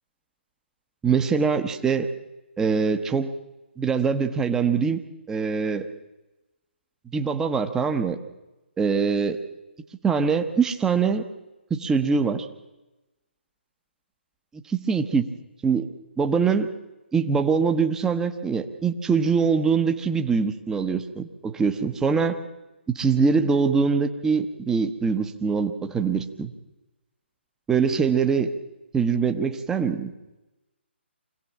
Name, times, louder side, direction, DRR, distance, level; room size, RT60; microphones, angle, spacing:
voice 1, 1.0-2.1 2.6-3.3 3.8-5.0 5.3-5.9 7.1-8.2 8.8-9.4 10.0-11.2 11.7-12.5 14.7-15.3 15.6-15.9 16.2-16.7 17.1-22.4 22.9-26.5 27.7-28.5 28.9-30.1, right 5 dB, 10° right, 6 dB, 1.0 m, -23 dB
24.5 x 17.0 x 7.2 m, 1.0 s
figure-of-eight pair, 140°, 6 cm